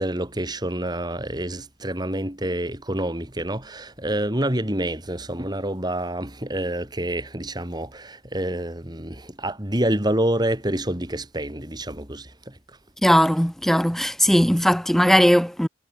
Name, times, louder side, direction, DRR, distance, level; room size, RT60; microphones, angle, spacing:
voice 1, 0.0-12.8, right 1 dB, 25° right, 3.7 m, -27 dB
voice 2, 13.0-15.7, equal, ahead, 1.3 m, -18 dB
head